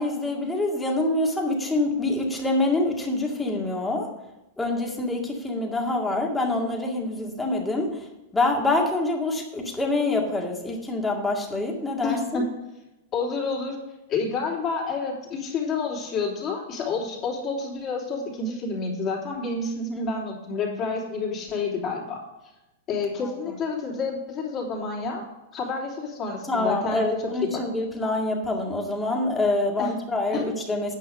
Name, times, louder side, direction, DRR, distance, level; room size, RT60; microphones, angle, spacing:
voice 1, 0.0-4.1 4.6-8.1 8.3-12.4 19.9-20.0 26.5-30.9, left 2 dB, 10° left, 0 dB, 2.1 m, -26 dB
voice 2, 12.0-12.4 13.1-13.8 14.1-22.2 22.9-25.2 25.5-27.1 27.4-27.5 29.8-29.9 30.3-30.4, left 4 dB, 35° left, -2 dB, 3.2 m, -29 dB
9.4 x 5.7 x 6.6 m, 0.97 s
hypercardioid pair, 125°, 0 cm